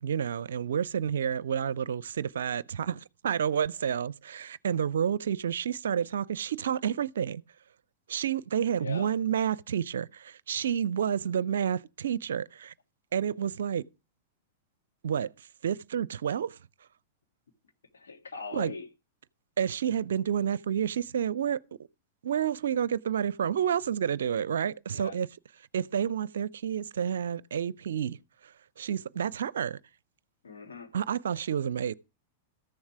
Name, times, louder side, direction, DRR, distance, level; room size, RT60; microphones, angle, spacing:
voice 1, 0.0-7.4 8.1-12.7 13.1-13.9 15.0-16.6 18.5-18.7 19.6-21.6 22.2-25.3 25.7-29.8 30.9-31.9, right 8 dB, 65° right, 0.5 m, -30 dB
voice 2, 8.8-9.2 17.9-18.9 24.9-25.2 30.4-30.9, left 4 dB, 70° left, 2.2 m, -40 dB
14.0 x 7.2 x 4.8 m
figure-of-eight pair, 95°, 0 cm